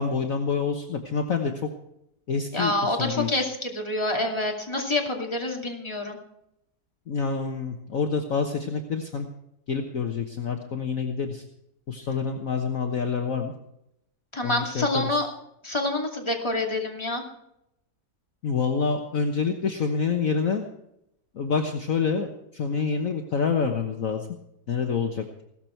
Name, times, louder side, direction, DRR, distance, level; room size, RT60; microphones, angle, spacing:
voice 1, 0.0-1.5 2.3-3.4 7.1-9.3 9.7-11.4 11.9-13.5 14.4-15.1 18.4-20.6 21.3-24.3 24.7-25.4, left 5 dB, 55° left, 3 dB, 1.5 m, -27 dB
voice 2, 2.5-6.2 14.3-15.3 15.6-17.2, left 1 dB, 15° left, 1 dB, 2.5 m, -27 dB
16.5 x 13.5 x 4.5 m, 0.80 s
omnidirectional pair, 1.9 m